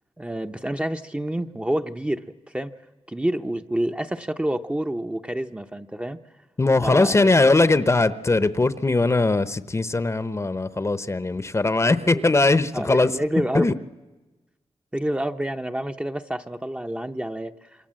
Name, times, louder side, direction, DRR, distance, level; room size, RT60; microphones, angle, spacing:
voice 1, 0.2-2.2 2.5-2.7 3.1-6.2 6.8-7.3 11.8-12.2 12.7-13.7 14.9-17.7, right 1 dB, 10° right, 6 dB, 0.8 m, -28 dB
voice 2, 6.6-13.1 13.5-13.7, left 2 dB, 25° left, 14 dB, 0.8 m, -20 dB
27.0 x 23.5 x 7.6 m, 1.2 s
cardioid pair, 90°, 11 cm